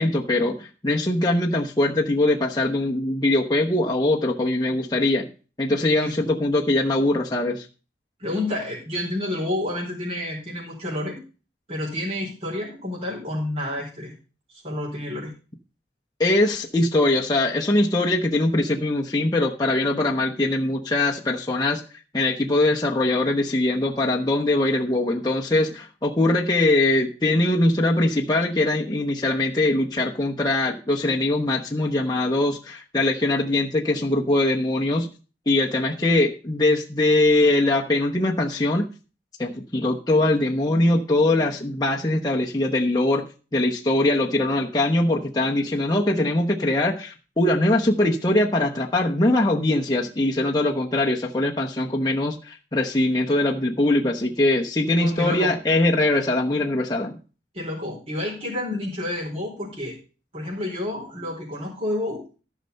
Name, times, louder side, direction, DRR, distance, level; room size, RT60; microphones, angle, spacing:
voice 1, 0.0-5.3 5.6-7.7 16.2-21.8 22.1-35.1 35.5-38.9 39.4-43.2 43.5-57.2, left 2 dB, 20° left, -1 dB, 1.0 m, -22 dB
voice 2, 5.7-6.2 8.2-11.2 11.7-14.1 14.5-15.3 55.0-55.5 57.5-60.0 60.3-62.2, left 1 dB, 35° right, -5 dB, 4.5 m, -29 dB
14.5 x 5.7 x 5.3 m, 0.35 s
head